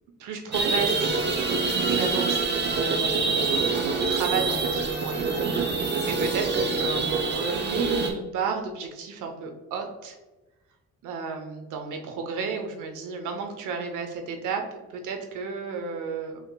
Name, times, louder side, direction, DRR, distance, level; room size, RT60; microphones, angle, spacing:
voice 1, 0.2-1.3 1.6-2.6 3.5-10.2 11.0-16.4, right 5 dB, 85° right, 4 dB, 0.8 m, -32 dB
sound 1, 0.5-8.1, right 4 dB, 35° right, 0.8 m, -25 dB
5.7 x 2.9 x 2.2 m, 1.1 s
cardioid pair, 90°, 30 cm